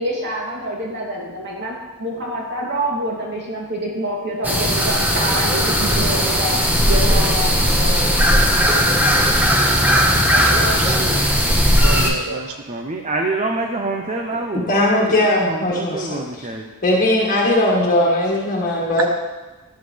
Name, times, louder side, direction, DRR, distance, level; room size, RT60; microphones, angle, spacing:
voice 1, 0.0-6.6 6.9-8.0, right 1 dB, 50° right, -3 dB, 2.9 m, -26 dB
sound 1, 4.4-12.1, equal, 10° right, 1.3 m, -17 dB
voice 2, 10.3-11.2 11.8-12.6, right 4 dB, 70° right, 6 dB, 1.2 m, -29 dB
voice 3, 10.8-11.3 12.3-16.7, right 2 dB, 30° right, 3 dB, 0.8 m, -27 dB
voice 4, 14.5-16.5 16.8-19.1, left 1 dB, 40° left, -3 dB, 1.7 m, -19 dB
13.5 x 11.5 x 3.4 m, 1.2 s
head